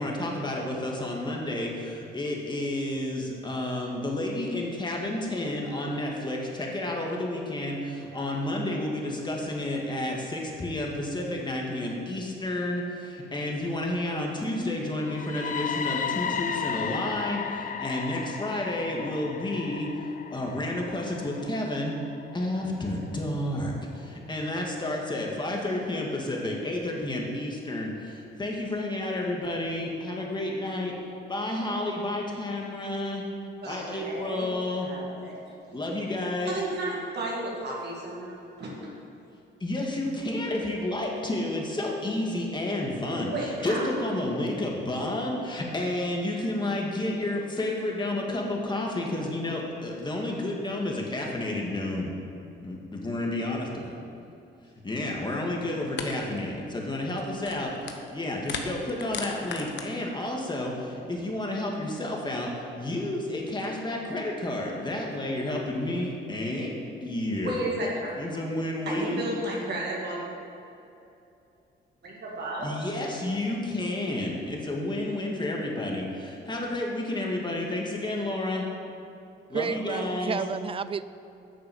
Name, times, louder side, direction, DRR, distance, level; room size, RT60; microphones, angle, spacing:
voice 1, 0.0-19.9 20.3-22.0 22.3-31.0 31.3-33.2 33.6-34.9 35.7-36.6 39.6-52.1 52.6-54.0 54.8-67.6 68.2-69.2 72.6-78.6 79.5-80.4, left 1 dB, 20° left, -1 dB, 2.1 m, -31 dB
sound 1, 15.0-22.9, left 7 dB, 40° left, 0.6 m, -34 dB
voice 2, 33.6-34.5 34.8-35.6 36.5-38.9 43.2-43.9 67.4-68.1 68.9-70.2 72.0-72.8, right 1 dB, 55° right, -4 dB, 2.2 m, -33 dB
sound 2, 55.3-55.4 56.0-56.1 56.4-56.6 57.1-58.1 58.4-59.8, left 6 dB, 65° left, 1.1 m, -36 dB
voice 3, 79.5-81.0, right 6 dB, 30° right, 14 dB, 0.4 m, -31 dB
9.1 x 6.8 x 7.1 m, 2.7 s
cardioid pair, 90°, 20 cm